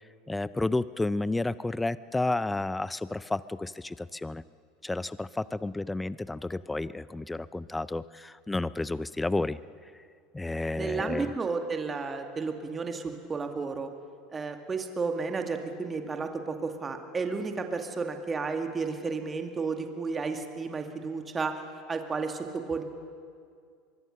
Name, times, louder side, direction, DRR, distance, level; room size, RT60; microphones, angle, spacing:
voice 1, 0.3-4.4 4.8-9.6 10.3-11.3, left 2 dB, 10° left, 17 dB, 0.5 m, -31 dB
voice 2, 10.8-13.9 14.3-21.6 21.9-22.8, right 4 dB, 25° right, 5 dB, 2.3 m, -32 dB
24.0 x 22.0 x 6.6 m, 2.2 s
hypercardioid pair, 80°, 0 cm